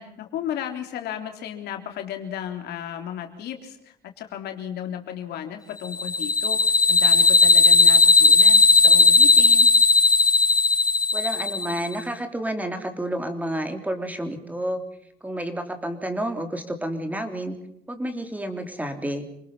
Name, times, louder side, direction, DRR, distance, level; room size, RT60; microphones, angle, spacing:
voice 1, 0.0-6.6 6.9-9.7, left 9 dB, 75° left, 5 dB, 3.5 m, -34 dB
sound 1, 5.9-11.9, left 3 dB, 20° left, 0.9 m, -16 dB
voice 2, 11.1-14.8 15.2-17.6 17.9-19.2, right 1 dB, 10° right, 6 dB, 3.4 m, -30 dB
27.5 x 20.0 x 5.6 m, 0.77 s
cardioid pair, 110°, 17 cm